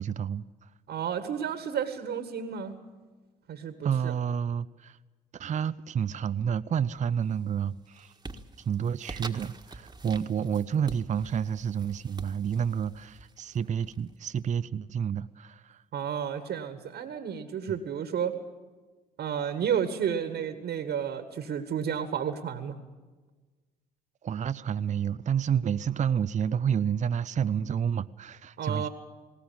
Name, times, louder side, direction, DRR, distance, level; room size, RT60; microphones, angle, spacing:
voice 1, 0.0-0.7 3.8-5.0 5.3-8.1 8.6-15.8 17.7-17.8 24.2-28.9, right 8 dB, 40° right, 14 dB, 0.6 m, -29 dB
voice 2, 0.9-2.8 3.5-4.1 15.9-18.4 19.2-22.8 28.6-28.9, right 8 dB, 60° right, 9 dB, 1.8 m, -31 dB
sound 1, 6.9-7.4 7.8-14.4, right 2 dB, 20° right, 1.7 m, -46 dB
20.0 x 18.0 x 8.8 m, 1.3 s
hypercardioid pair, 50°, 20 cm